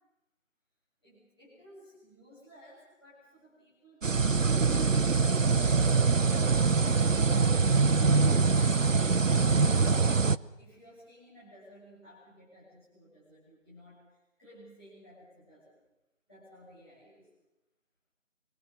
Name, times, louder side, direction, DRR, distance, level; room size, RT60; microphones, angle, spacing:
voice 1, 1.0-7.1 8.6-10.3 10.6-15.8 16.3-17.3, equal, 20° left, -11 dB, 7.2 m, -55 dB
sound 1, 4.0-10.4, right 4 dB, 70° right, 0.9 m, -24 dB
27.0 x 24.0 x 6.6 m, 0.95 s
figure-of-eight pair, 180°, 40 cm